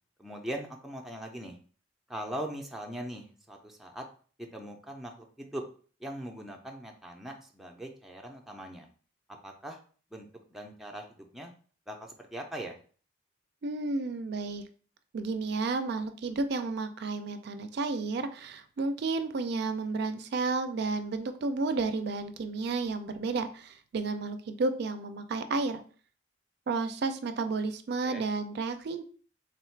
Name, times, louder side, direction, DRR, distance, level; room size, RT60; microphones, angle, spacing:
voice 1, 0.2-1.6 2.1-4.0 4.4-5.6 6.0-8.9 9.4-9.8 10.1-11.5 11.9-12.8 28.0-28.2, right 1 dB, ahead, 1 dB, 0.5 m, -41 dB
voice 2, 13.6-14.6 15.1-25.8 26.7-29.0, right 3 dB, 60° right, 8 dB, 0.4 m, -32 dB
3.5 x 2.4 x 4.4 m, 0.41 s
head